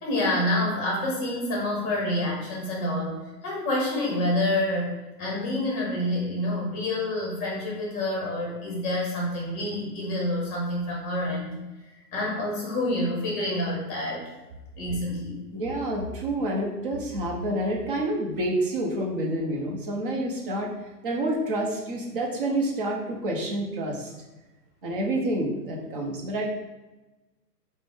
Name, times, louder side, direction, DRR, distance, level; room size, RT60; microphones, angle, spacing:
voice 1, 0.0-11.6 12.1-14.3 14.8-15.4, left 1 dB, 20° left, -2 dB, 0.8 m, -28 dB
voice 2, 15.5-20.7 21.0-24.1 24.8-26.5, right 1 dB, 35° right, -1 dB, 0.6 m, -28 dB
3.4 x 2.0 x 3.4 m, 1.1 s
hypercardioid pair, 140°, 50 cm